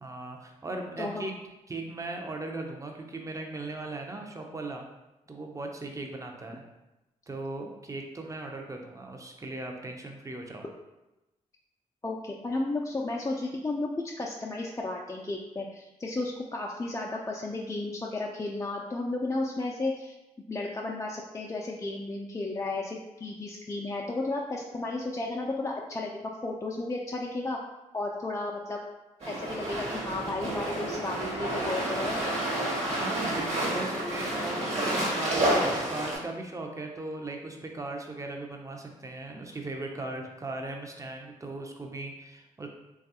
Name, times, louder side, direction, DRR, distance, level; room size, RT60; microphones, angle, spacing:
voice 1, 0.0-1.3 1.7-4.8 5.3-6.6 7.3-10.6 33.0-42.7, right 2 dB, 20° right, 2 dB, 0.6 m, -38 dB
voice 2, 1.0-1.3 12.0-13.9 14.2-20.1 20.5-26.1 26.4-27.6 27.9-28.8 29.2-32.2, left 2 dB, 20° left, -1 dB, 0.4 m, -33 dB
sound 1, 29.2-36.2, right 1 dB, 50° right, 1.3 m, -30 dB
3.2 x 2.3 x 2.8 m, 0.99 s
supercardioid pair, 45°, 14 cm